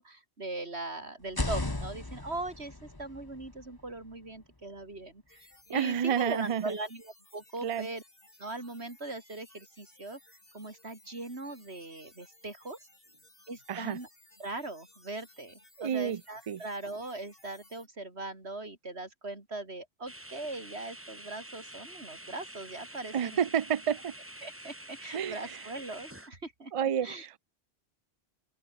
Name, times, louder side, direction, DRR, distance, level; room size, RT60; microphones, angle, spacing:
voice 1, 0.0-8.0 8.4-10.2 10.5-12.8 13.5-14.1 14.4-23.4 24.4-26.7 27.0-27.3, right 2 dB, 75° right, 4.4 m, -40 dB
sound 1, 1.2-5.0, left 2 dB, 20° left, 1.6 m, -38 dB
sound 2, 5.3-17.9, left 1 dB, 60° left, 6.5 m, -60 dB
voice 2, 5.7-6.8 7.6-7.9 13.7-14.0 15.8-16.2 16.5-16.6 23.1-24.1 25.1-25.6 26.7-27.4, right 8 dB, 45° right, 0.4 m, -30 dB
sound 3, 20.1-26.3, right 1 dB, 10° right, 2.1 m, -47 dB
open air
omnidirectional pair, 1.1 m